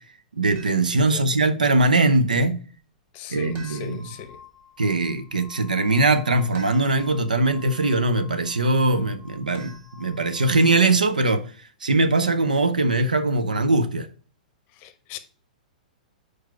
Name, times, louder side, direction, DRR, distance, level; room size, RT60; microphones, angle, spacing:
voice 1, 0.4-2.6 3.3-4.0 4.8-11.4 11.8-14.1, right 2 dB, 75° right, 0.7 m, -21 dB
sound 1, 0.6-1.1 3.6-4.3 6.5-7.3 9.5-10.4, right 2 dB, 35° right, 1.8 m, -48 dB
voice 2, 0.9-1.2 3.1-4.4 14.8-15.2, left 9 dB, 35° left, 0.7 m, -39 dB
sound 2, 3.2-11.0, left 5 dB, 15° right, 1.5 m, -49 dB
4.8 x 4.6 x 5.6 m
figure-of-eight pair, 105°, 4 cm